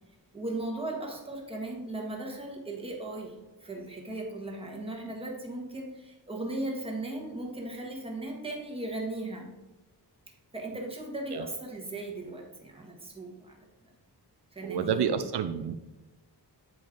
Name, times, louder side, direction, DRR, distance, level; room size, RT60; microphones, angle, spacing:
voice 1, 0.3-9.5 10.5-13.7 14.5-15.2, right 2 dB, 15° right, 0 dB, 1.4 m, -37 dB
voice 2, 14.6-15.8, right 8 dB, 75° right, 9 dB, 0.5 m, -29 dB
8.5 x 5.1 x 3.8 m, 1.1 s
wide cardioid pair, 170°, 41 cm